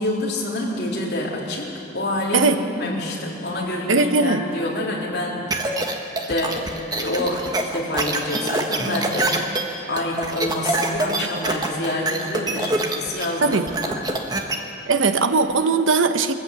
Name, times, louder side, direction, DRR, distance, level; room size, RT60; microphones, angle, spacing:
voice 1, 0.0-2.5 2.8-5.5 6.2-9.4 9.9-14.1, left 1 dB, 55° left, -4 dB, 3.7 m, -27 dB
voice 2, 3.9-4.5 11.2-11.3 13.4-13.7 14.9-16.3, right 3 dB, 85° right, 9 dB, 1.0 m, -19 dB
sound 1, 5.5-14.5, right 2 dB, 20° right, 1.2 m, -25 dB
22.5 x 14.0 x 8.2 m, 2.9 s
head